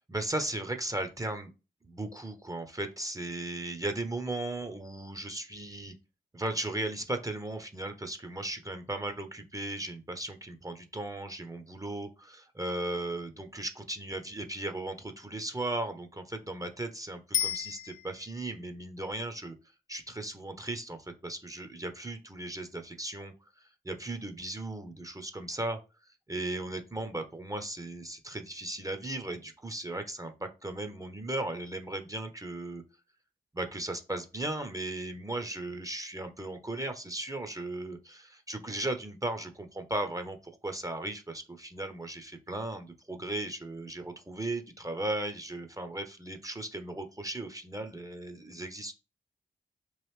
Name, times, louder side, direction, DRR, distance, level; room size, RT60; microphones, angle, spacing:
voice 1, 0.1-1.5 1.8-5.9 6.3-19.6 19.9-25.8 26.3-32.8 33.5-48.9, right 2 dB, 15° right, 7 dB, 0.6 m, -36 dB
Bicycle bell, 17.3-18.5 27.5-27.6, left 9 dB, 65° left, 0.4 m, -33 dB
3.0 x 2.4 x 3.2 m, 0.30 s
supercardioid pair, 40°, 21 cm